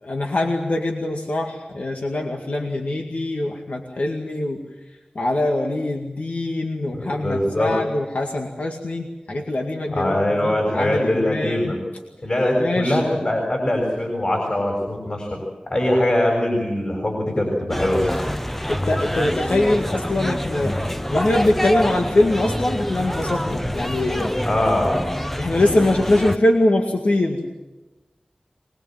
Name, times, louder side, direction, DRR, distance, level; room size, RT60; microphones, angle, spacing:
voice 1, 0.0-4.6 5.1-11.7 12.6-13.0 18.7-24.5 25.4-27.5, left 1 dB, 80° left, 0 dB, 2.2 m, -23 dB
voice 2, 6.9-7.7 9.9-11.8 12.2-15.4 15.7-18.3 24.5-25.0, left 1 dB, 45° left, 0 dB, 6.7 m, -22 dB
sound 1, 17.7-26.4, equal, 10° left, 0.8 m, -26 dB
25.0 x 20.5 x 7.7 m, 1.1 s
wide cardioid pair, 70°, 3 cm